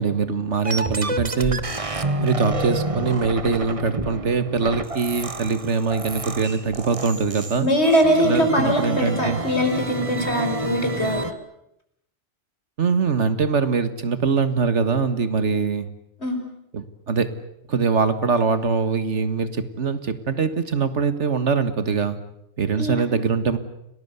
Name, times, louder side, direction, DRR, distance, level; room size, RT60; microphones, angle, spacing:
voice 1, 0.0-1.6 2.2-7.7 8.2-9.4 12.8-15.9 16.7-17.3 17.7-22.2 22.6-23.6, right 5 dB, 85° right, 12 dB, 2.0 m, -23 dB
sound 1, 0.6-11.3, right 2 dB, 30° right, 1.3 m, -29 dB
voice 2, 7.6-11.3 16.2-16.4 22.8-23.0, equal, 65° left, 4 dB, 5.8 m, -21 dB
30.0 x 19.5 x 8.2 m, 0.81 s
omnidirectional pair, 1.2 m